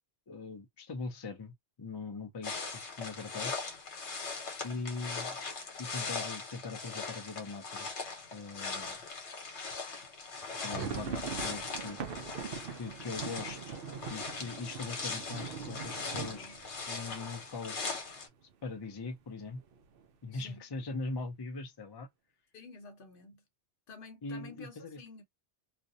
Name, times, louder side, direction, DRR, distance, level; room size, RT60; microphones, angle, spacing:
voice 1, 0.3-1.5 1.8-3.7 4.6-5.4 5.8-7.9 8.3-9.0 10.5-12.0 12.8-13.8 14.1-16.5 16.9-17.8 18.6-19.6 20.2-22.1 24.2-25.0, left 3 dB, 35° left, 0.4 m, -41 dB
sound 1, 2.4-18.3, left 4 dB, 85° left, 1.2 m, -40 dB
sound 2, 10.4-18.1 18.4-18.5 18.8-19.0 19.6-20.0, right 6 dB, 65° right, 0.7 m, -42 dB
voice 2, 16.2-16.6 20.3-20.6 22.5-23.4 23.9-25.2, left 3 dB, 55° left, 0.8 m, -51 dB
2.5 x 2.1 x 2.5 m
omnidirectional pair, 1.1 m